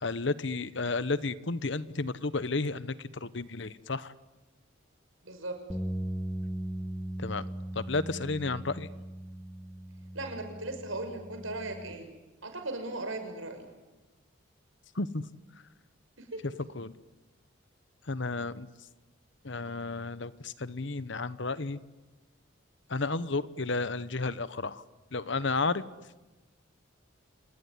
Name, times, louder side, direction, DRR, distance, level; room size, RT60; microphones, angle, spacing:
voice 1, 0.0-4.1 7.2-7.4 7.7-8.9 14.9-15.2 16.7-16.9 18.1-18.7 19.4-21.8 22.9-24.8 25.1-25.9, left 3 dB, 65° left, 15 dB, 1.0 m, -32 dB
voice 2, 5.2-5.6 10.1-12.1 12.4-13.7 16.3-16.4, right 2 dB, 80° right, 6 dB, 6.2 m, -37 dB
sound 1, 5.7-11.9, right 1 dB, 5° left, 1.4 m, -38 dB
28.0 x 20.0 x 9.8 m, 1.1 s
head